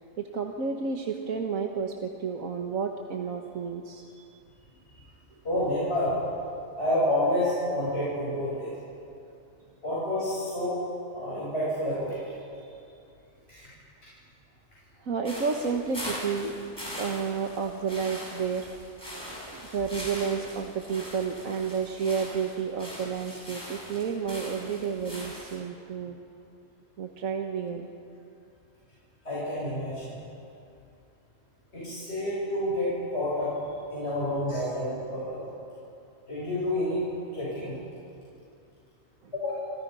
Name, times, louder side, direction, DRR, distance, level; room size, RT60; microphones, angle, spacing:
voice 1, 0.2-4.0 15.0-16.5 17.0-18.7 19.5-26.2 27.0-27.9 31.8-32.1 39.2-39.3, right 6 dB, 80° right, 2 dB, 1.8 m, -31 dB
voice 2, 5.4-6.1 6.8-8.7 9.8-10.8 11.1-12.2 13.5-13.6 29.2-30.1 31.7-35.4 36.3-37.0 37.3-37.8 39.3-39.7, left 1 dB, 50° left, -9 dB, 8.1 m, -29 dB
sound 1, 15.2-25.6, equal, 20° left, 7.0 m, -41 dB
29.5 x 27.5 x 5.6 m, 2.6 s
omnidirectional pair, 1.4 m